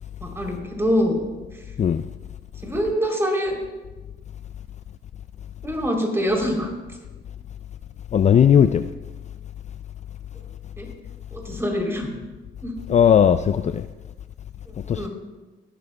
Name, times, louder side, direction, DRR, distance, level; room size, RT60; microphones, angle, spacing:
voice 1, 0.2-1.2 2.6-3.5 5.6-6.7 10.8-10.9 11.3-12.1 12.6-12.7 14.9-15.1, equal, 15° right, 3.4 m, -24 dB
voice 2, 8.1-8.9 12.9-13.9 14.9-15.1, left 8 dB, 35° left, 0.4 m, -17 dB
17.5 x 12.0 x 2.3 m
cardioid pair, 90°, 20 cm